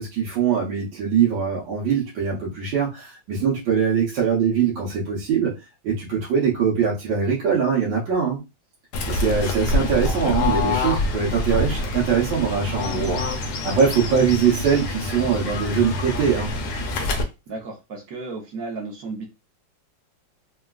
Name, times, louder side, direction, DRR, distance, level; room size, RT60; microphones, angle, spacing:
voice 1, 0.0-5.5 5.8-8.4 9.1-16.5, right 6 dB, 85° right, -5 dB, 1.6 m, -22 dB
Fowl / Bird, 8.9-17.2, left 2 dB, 70° left, 1.2 m, -26 dB
voice 2, 17.5-19.3, right 3 dB, 55° right, 1 dB, 1.1 m, -33 dB
3.7 x 2.2 x 2.3 m, 0.25 s
omnidirectional pair, 2.0 m